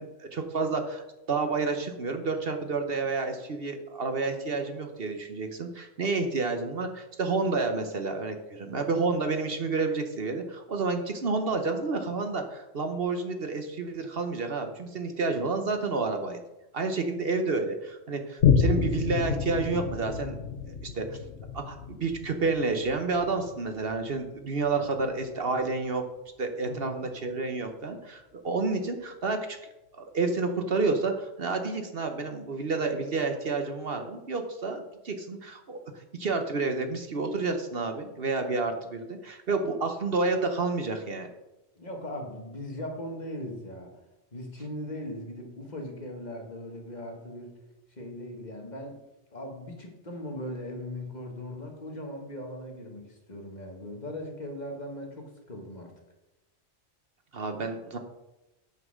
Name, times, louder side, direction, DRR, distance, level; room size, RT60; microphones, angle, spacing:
voice 1, 0.0-16.4 16.7-20.4 20.9-21.2 21.5-26.1 26.4-29.6 29.9-41.3 57.3-58.0, right 3 dB, 55° right, 6 dB, 1.1 m, -30 dB
Boom, 18.4-25.3 25.9-26.0, left 7 dB, 65° left, 0.9 m, -29 dB
voice 2, 26.6-27.1 41.8-43.9 44.3-47.5 48.0-49.0 49.3-55.9, left 1 dB, 40° left, 1 dB, 1.8 m, -39 dB
9.4 x 5.8 x 6.3 m, 0.97 s
omnidirectional pair, 1.2 m